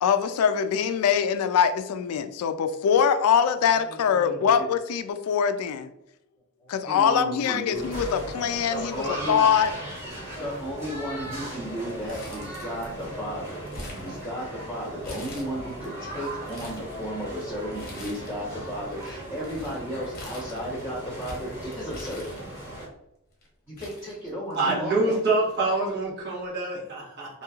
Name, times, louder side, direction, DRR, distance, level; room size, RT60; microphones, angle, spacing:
voice 1, 0.0-5.9 6.7-9.7, left 7 dB, 80° left, 12 dB, 0.3 m, -23 dB
voice 2, 3.8-4.5 6.6-7.9 8.7-9.4 10.4-22.4 23.7-25.2, equal, 10° right, -12 dB, 1.0 m, -34 dB
sound 1, 7.7-22.9, right 1 dB, 30° right, 1.4 m, -38 dB
Crumpling crinkling, 12.1-13.1 13.4-14.6 15.0-15.9 16.3-16.9 17.7-18.5 18.8-22.8 23.4-23.5 23.8-24.8 25.1-25.2 26.2-26.4, left 1 dB, 40° left, 0.8 m, -44 dB
voice 3, 24.5-27.4, right 3 dB, 50° right, -6 dB, 1.0 m, -26 dB
3.0 x 2.7 x 2.3 m, 0.82 s
head